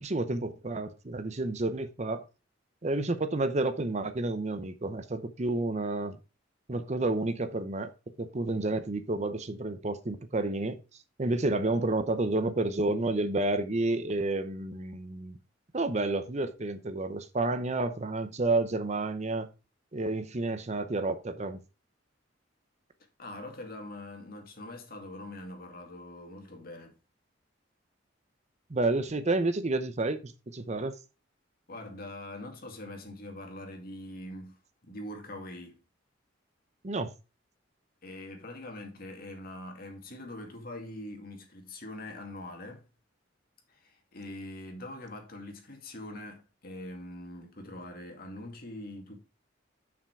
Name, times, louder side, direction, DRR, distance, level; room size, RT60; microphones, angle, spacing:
voice 1, 0.0-2.2 2.8-6.2 6.7-7.9 8.2-10.8 11.2-15.4 15.7-19.5 19.9-21.6 28.7-30.9 36.8-37.1, right 2 dB, 35° right, 0.7 m, -30 dB
voice 2, 23.2-26.9 31.7-35.8 38.0-42.8 43.7-49.2, left 1 dB, 50° left, 2.3 m, -43 dB
7.2 x 6.1 x 4.7 m
head